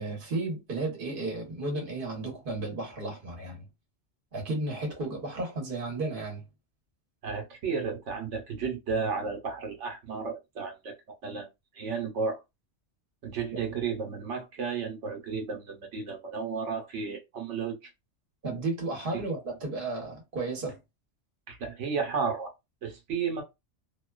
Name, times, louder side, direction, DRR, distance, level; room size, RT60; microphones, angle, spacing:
voice 1, 0.0-3.6 4.3-6.5 18.4-20.8, right 2 dB, 50° right, 1.2 m, -33 dB
voice 2, 7.2-10.9 11.2-11.5 11.7-12.4 13.2-17.9 19.1-19.3 21.5-22.5 22.8-23.4, right 5 dB, 85° right, 1.2 m, -33 dB
2.8 x 2.2 x 2.3 m
omnidirectional pair, 1.2 m